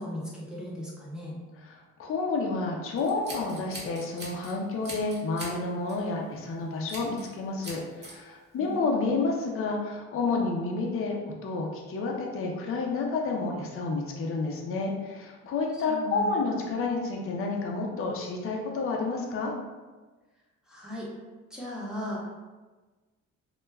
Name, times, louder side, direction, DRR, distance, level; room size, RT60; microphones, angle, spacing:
voice 1, 0.0-1.4 8.5-9.0 15.9-16.6 20.7-21.1 21.5-22.4, equal, ahead, -6 dB, 0.8 m, -37 dB
voice 2, 1.6-11.2 11.4-19.5, left 3 dB, 45° left, 0 dB, 0.5 m, -30 dB
Scissors, 3.0-4.5 4.8-5.6 5.9-6.1 6.9-7.3 7.6-8.1, right 1 dB, 35° right, 0.9 m, -41 dB
2.2 x 2.1 x 3.3 m, 1.3 s
cardioid pair, 90°, 30 cm